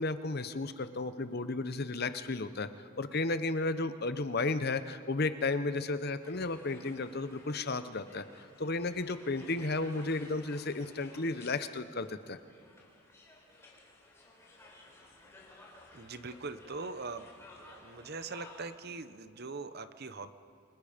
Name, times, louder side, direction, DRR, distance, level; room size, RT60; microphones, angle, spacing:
voice 1, 0.0-2.7 3.0-8.3 8.6-12.4, left 3 dB, 45° left, 11 dB, 0.8 m, -33 dB
sound 1, 6.2-18.7, left 2 dB, 10° left, 3.9 m, -56 dB
voice 2, 15.9-17.3 17.6-20.3, right 3 dB, 45° right, 11 dB, 0.8 m, -42 dB
28.5 x 25.5 x 5.2 m, 2.3 s
head